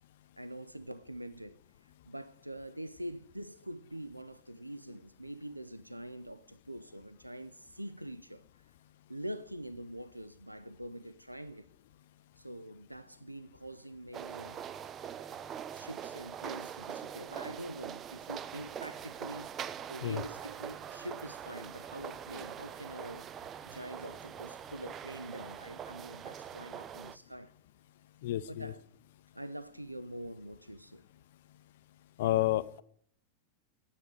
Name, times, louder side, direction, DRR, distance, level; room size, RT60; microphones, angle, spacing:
voice 1, 0.4-8.4 9.1-11.7 12.4-14.7 15.5-19.5 19.9-23.3 23.6-27.5 28.5-28.8 29.3-31.1, right 1 dB, 85° right, 0.4 m, -45 dB
sound 1, 14.1-27.2, right 9 dB, 30° right, 0.4 m, -43 dB
voice 2, 28.2-28.7 32.2-32.8, left 14 dB, 55° left, 0.5 m, -30 dB
9.3 x 8.7 x 7.9 m
figure-of-eight pair, 90°, 0 cm